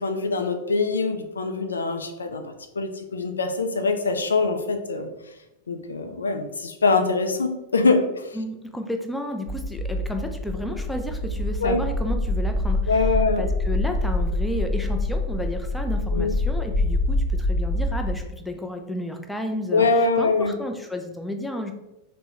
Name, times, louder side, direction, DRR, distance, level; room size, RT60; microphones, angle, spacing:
voice 1, 0.0-2.4 2.8-5.1 5.7-8.4 11.6-11.8 12.9-13.5 16.1-16.3 19.7-20.5, left 3 dB, 75° left, 6 dB, 0.3 m, -23 dB
voice 2, 8.3-13.1 13.4-21.7, left 1 dB, 5° left, 4 dB, 0.4 m, -32 dB
sound 1, 9.5-18.2, left 1 dB, 55° left, 0.8 m, -25 dB
3.4 x 2.1 x 2.9 m, 0.95 s
figure-of-eight pair, 95°, 0 cm